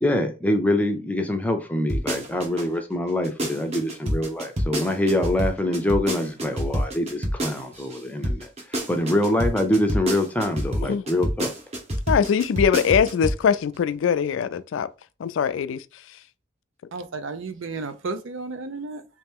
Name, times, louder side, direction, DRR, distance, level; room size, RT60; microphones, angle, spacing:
voice 1, 0.0-8.5 8.9-11.5, left 1 dB, 10° left, 0.5 m, -24 dB
sound 1, 1.9-2.6 3.1-8.0 8.2-13.4 13.7-13.8, equal, 35° right, 0.8 m, -27 dB
voice 2, 12.1-14.9 15.2-15.8, left 7 dB, 80° left, 0.3 m, -22 dB
voice 3, 16.9-19.0, right 3 dB, 80° right, 0.5 m, -33 dB
3.1 x 2.9 x 3.6 m
head